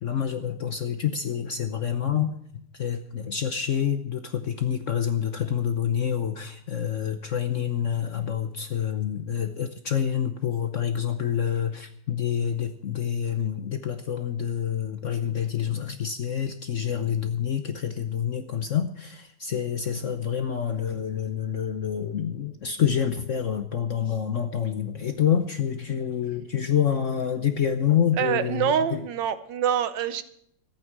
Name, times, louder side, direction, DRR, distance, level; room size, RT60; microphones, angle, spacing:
voice 1, 0.0-2.3 2.7-29.0, left 8 dB, 55° left, 8 dB, 0.9 m, -27 dB
voice 2, 28.2-30.2, right 9 dB, 70° right, 12 dB, 1.4 m, -25 dB
14.5 x 9.0 x 7.4 m, 0.70 s
omnidirectional pair, 2.1 m